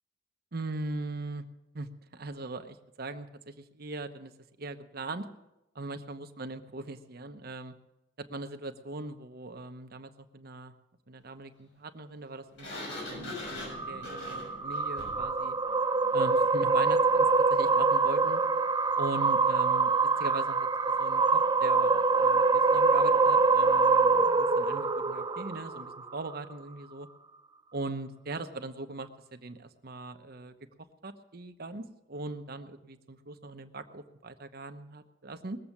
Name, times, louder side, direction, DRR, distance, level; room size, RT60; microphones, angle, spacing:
voice 1, 0.5-1.4 1.7-4.3 4.6-5.2 5.7-7.7 8.2-10.7 11.1-15.6 16.1-18.4 19.0-27.1 27.7-30.5 31.0-35.6, right 2 dB, 55° right, 8 dB, 1.0 m, -40 dB
Sliding door, 12.6-15.3, left 1 dB, 75° left, 6.9 m, -41 dB
sound 1, 13.7-26.2, right 4 dB, 20° right, 0.6 m, -25 dB
20.5 x 7.8 x 7.2 m, 0.91 s
head